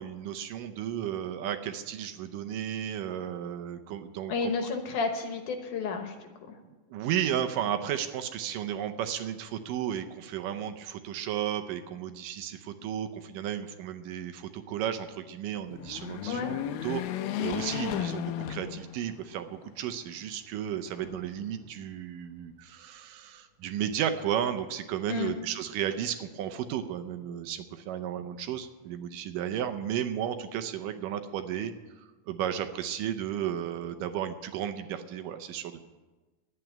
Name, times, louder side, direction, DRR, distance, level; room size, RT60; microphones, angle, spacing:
voice 1, 0.0-4.7 6.9-17.0 17.4-35.9, right 10 dB, 75° right, 8 dB, 2.2 m, -34 dB
voice 2, 4.3-6.1 6.5-6.6 16.3-16.5 25.1-25.3, left 4 dB, 65° left, 5 dB, 2.5 m, -31 dB
sound 1, 15.7-19.3 19.8-19.9 20.9-21.7, left 11 dB, 90° left, 2.5 m, -34 dB
11.0 x 8.9 x 8.8 m, 1.2 s
omnidirectional pair, 4.1 m